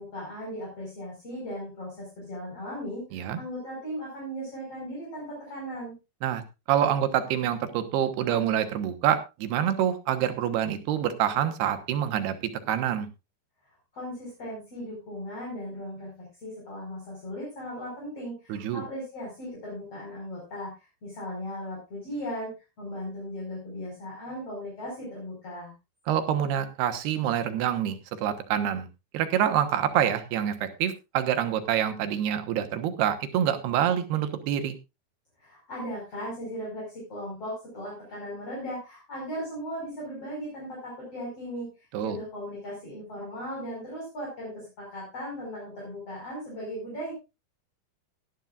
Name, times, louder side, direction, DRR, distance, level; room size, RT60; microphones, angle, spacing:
voice 1, 0.0-5.9 13.9-25.7 35.4-47.1, equal, 35° left, -4 dB, 6.1 m, -37 dB
voice 2, 6.7-12.3 12.7-13.1 18.5-18.8 26.1-28.9 29.1-34.8 41.9-42.2, right 10 dB, 85° right, 8 dB, 3.3 m, -26 dB
17.5 x 11.0 x 2.5 m, 0.26 s
omnidirectional pair, 4.6 m